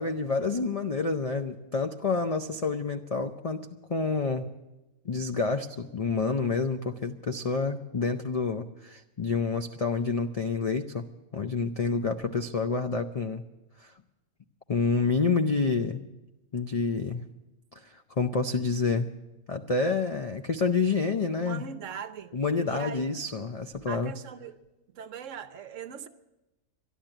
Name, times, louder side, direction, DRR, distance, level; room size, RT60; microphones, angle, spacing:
voice 1, 0.0-4.5 5.0-11.0 11.3-13.4 13.8-13.9 14.7-16.0 16.5-17.2 17.8-19.1 19.5-21.6 22.3-24.1, left 4 dB, 70° left, 5 dB, 0.3 m, -28 dB
voice 2, 21.4-22.3 22.7-23.0 23.9-24.6 24.9-26.1, right 7 dB, 65° right, 10 dB, 1.0 m, -40 dB
12.0 x 11.5 x 8.9 m, 1.0 s
omnidirectional pair, 1.5 m